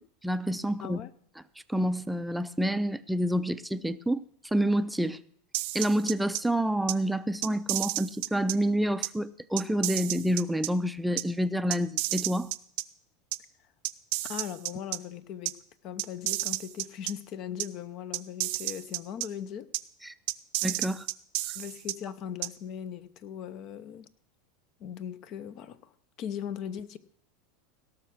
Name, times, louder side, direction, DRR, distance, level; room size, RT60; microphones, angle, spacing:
voice 1, 0.2-1.0 1.7-5.2 5.7-12.5 20.0-20.1 20.6-21.1, equal, 5° right, 0.5 m, -28 dB
sound 1, 5.5-6.4 6.9-7.0 7.4-8.5 9.0-9.1 9.6-10.7 11.2-11.3 11.7-12.8 13.3-13.4 13.8-15.0 15.4-15.5 16.0-17.1 17.6-17.7 18.1-19.3 19.7-19.8 20.3-21.9 22.4-22.5, right 20 dB, 65° right, 0.6 m, -31 dB
voice 2, 14.2-15.6 15.8-19.7 21.5-24.1 24.8-25.9 26.2-27.0, left 9 dB, 50° left, 0.8 m, -39 dB
17.5 x 5.9 x 6.1 m
supercardioid pair, 110°, 0 cm